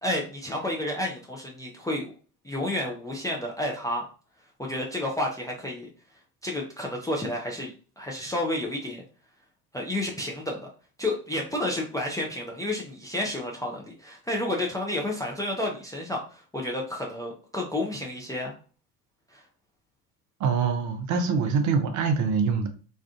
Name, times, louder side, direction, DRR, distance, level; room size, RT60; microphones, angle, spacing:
voice 1, 0.0-2.1 2.4-4.1 4.6-5.9 6.4-9.0 9.7-10.7 11.0-18.5 19.3-19.4, left 1 dB, 10° left, -1 dB, 0.4 m, -31 dB
voice 2, 20.4-22.7, right 5 dB, 40° right, 6 dB, 0.5 m, -24 dB
2.5 x 2.4 x 2.3 m, 0.38 s
hypercardioid pair, 65°, 46 cm